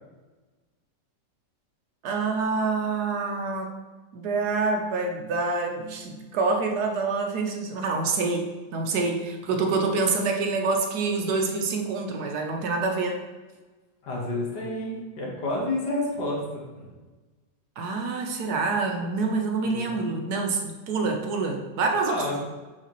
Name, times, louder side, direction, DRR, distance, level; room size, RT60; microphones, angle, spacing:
voice 1, 2.0-3.7 4.1-8.5 8.7-13.2 17.8-22.2, right 4 dB, 70° right, 2 dB, 1.1 m, -26 dB
voice 2, 14.0-16.4 16.7-16.9 19.7-20.2 22.1-22.4, left 1 dB, 70° left, -3 dB, 2.0 m, -30 dB
5.8 x 5.8 x 2.9 m, 1.2 s
omnidirectional pair, 1.9 m